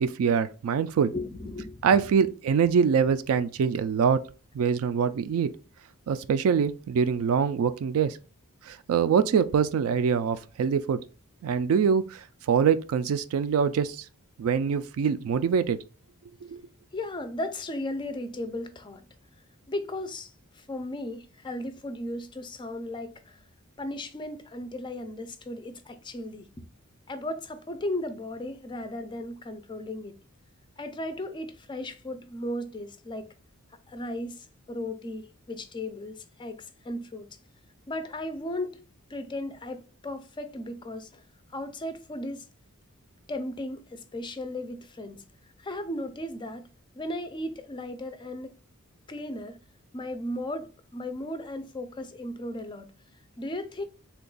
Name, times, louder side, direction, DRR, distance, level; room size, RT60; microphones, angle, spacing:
voice 1, 0.0-1.1 1.8-4.2 4.5-5.5 6.1-8.2 8.7-11.0 11.4-12.2 12.5-14.0 14.4-15.8 16.4-16.6, right 6 dB, 65° right, 0.3 m, -24 dB
voice 2, 1.1-2.1 16.9-19.0 19.7-20.3 20.6-23.4 23.8-26.5 27.1-30.2 30.8-33.3 33.9-37.3 37.9-38.8 39.1-41.2 41.5-42.5 43.3-45.2 45.6-46.7 47.0-48.5 49.1-49.6 49.9-52.9 53.4-53.8, left 1 dB, 20° left, 0.4 m, -36 dB
3.4 x 2.3 x 3.8 m
head